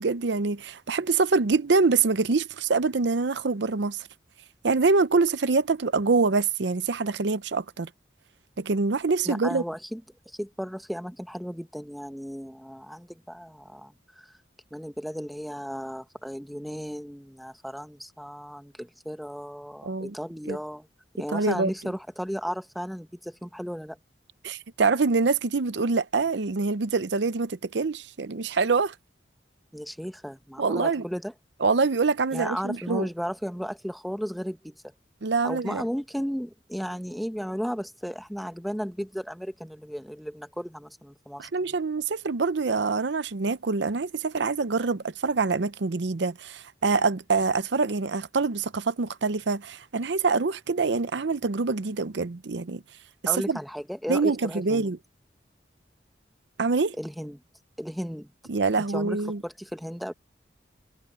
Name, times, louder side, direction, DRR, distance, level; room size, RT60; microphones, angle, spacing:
voice 1, 0.0-4.1 4.6-7.9 8.6-9.6 19.8-20.1 20.5-20.6 21.3-21.7 24.4-28.9 30.6-31.0 31.6-33.1 35.2-35.8 41.4-52.8 53.5-53.6 54.1-55.0 56.6-57.0 58.5-59.4, right 4 dB, 75° right, 0.7 m, -25 dB
voice 2, 9.2-10.0 10.3-14.4 14.7-20.9 21.2-24.0 29.7-31.3 32.3-34.7 35.4-41.5 53.3-54.9 57.0-57.4 57.8-58.3 58.9-60.1, equal, ahead, 1.0 m, -34 dB
head